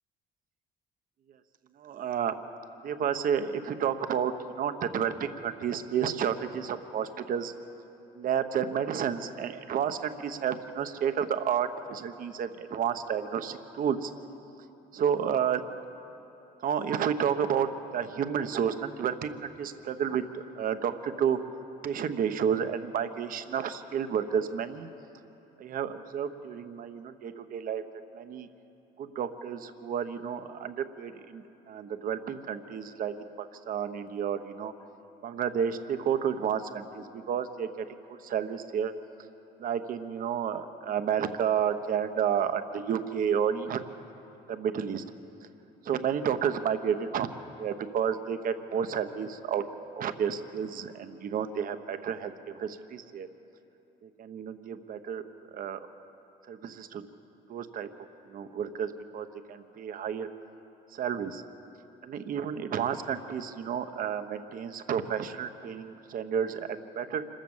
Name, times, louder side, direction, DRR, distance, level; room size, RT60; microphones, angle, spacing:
voice 1, 1.8-2.4 2.8-7.5 8.1-14.1 14.9-15.6 16.6-21.4 21.8-24.9 25.6-27.8 28.1-28.5 29.0-34.7 35.2-38.9 39.6-43.8 44.5-45.0 45.8-47.3 47.6-49.6 50.0-53.3 54.0-55.8 56.5-57.1 57.5-57.9 58.2-60.3 60.9-61.4 62.0-67.2, right 8 dB, 55° right, 9 dB, 1.1 m, -31 dB
26.0 x 14.0 x 7.3 m, 2.9 s
cardioid pair, 110°, 17 cm